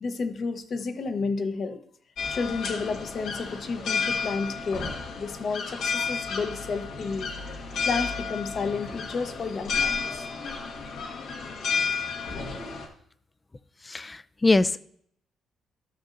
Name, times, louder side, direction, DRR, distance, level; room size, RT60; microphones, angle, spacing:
voice 1, 0.0-1.8 2.3-7.3 7.8-10.2, left 4 dB, 50° left, 9 dB, 0.9 m, -31 dB
sound 1, 2.2-12.9, left 5 dB, 80° left, 1.5 m, -32 dB
voice 2, 13.9-14.8, left 2 dB, 20° left, 15 dB, 0.4 m, -23 dB
14.0 x 6.4 x 2.6 m, 0.64 s
cardioid pair, 90°, 0 cm